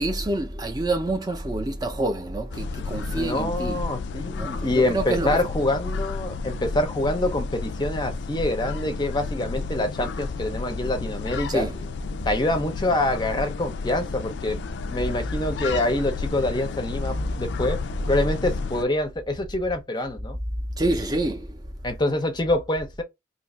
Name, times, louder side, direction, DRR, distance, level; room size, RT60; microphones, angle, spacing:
voice 1, 0.0-3.8 4.3-5.4 11.5-11.7 20.8-21.6, right 1 dB, 20° right, 0.5 m, -27 dB
sound 1, 2.5-18.8, left 4 dB, 70° left, 0.3 m, -32 dB
voice 2, 3.1-11.7 12.3-14.6 14.9-17.8 18.1-20.4 21.8-23.0, left 1 dB, 25° left, 0.6 m, -26 dB
2.7 x 2.5 x 4.2 m
head